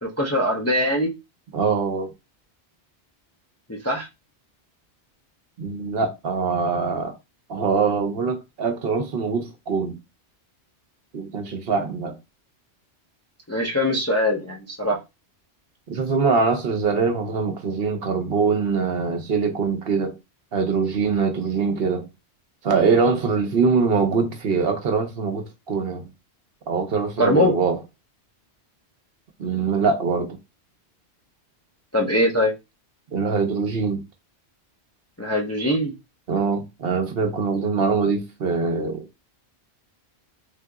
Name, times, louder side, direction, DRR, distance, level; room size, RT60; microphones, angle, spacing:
voice 1, 0.0-1.2 3.7-4.1 13.5-15.0 27.2-27.6 31.9-32.5 35.2-35.9, left 1 dB, 20° left, 0.4 m, -22 dB
voice 2, 1.5-2.1 5.6-7.1 7.5-9.9 11.1-12.2 15.9-20.2 20.5-22.1 22.6-26.1 26.7-27.8 29.4-30.4 33.1-34.0 36.3-39.0, right 5 dB, 65° right, 0.9 m, -23 dB
3.4 x 2.8 x 2.3 m
omnidirectional pair, 1.1 m